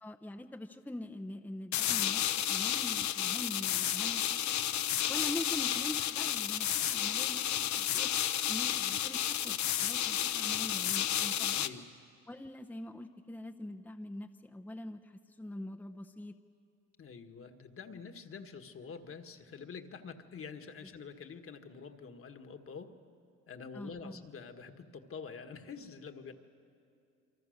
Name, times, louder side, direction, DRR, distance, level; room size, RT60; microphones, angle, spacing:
voice 1, 0.0-2.2 2.5-4.6 5.1-8.1 8.5-11.7 12.3-16.3 23.7-24.2, left 1 dB, 5° left, 6 dB, 0.8 m, -43 dB
sound 1, 1.7-11.7, left 11 dB, 70° left, 0.9 m, -32 dB
voice 2, 11.5-11.9 17.0-22.9 23.5-26.3, left 5 dB, 45° left, 7 dB, 1.6 m, -47 dB
28.0 x 24.0 x 6.6 m, 2.5 s
cardioid pair, 90°, 30 cm